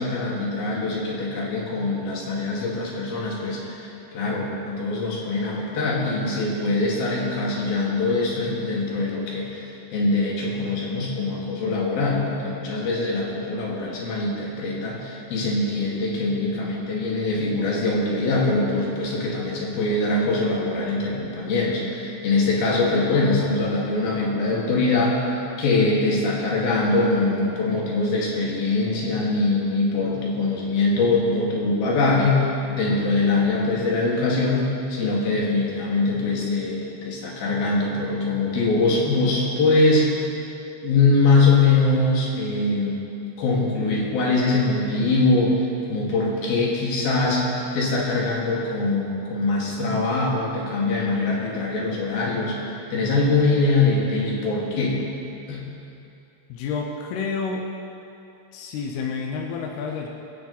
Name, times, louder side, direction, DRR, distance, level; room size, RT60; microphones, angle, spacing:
voice 1, 0.0-25.2 25.6-40.2 40.8-43.0 43.4-55.0 55.5-55.7, left 3 dB, 55° left, -4 dB, 3.7 m, -23 dB
voice 2, 56.5-57.7 58.5-60.1, left 5 dB, 80° left, 1 dB, 2.3 m, -29 dB
23.0 x 8.9 x 4.2 m, 2.7 s
omnidirectional pair, 5.6 m